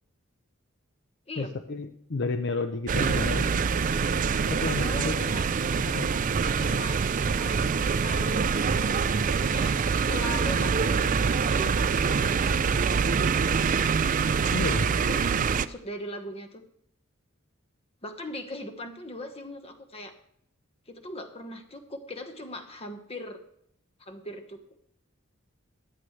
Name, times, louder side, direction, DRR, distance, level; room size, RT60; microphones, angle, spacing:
voice 1, 1.4-3.6 4.5-5.3 5.8-6.1 14.5-14.9, left 3 dB, 60° left, 8 dB, 0.7 m, -31 dB
sound 1, 2.9-15.7, right 5 dB, 40° right, 0.4 m, -25 dB
voice 2, 4.6-5.4 6.6-9.7 10.0-11.7 12.0-12.7 14.8-16.6 18.0-20.1 20.9-23.4 24.0-24.6, left 1 dB, 30° left, 7 dB, 1.2 m, -39 dB
15.5 x 11.0 x 3.2 m, 0.69 s
head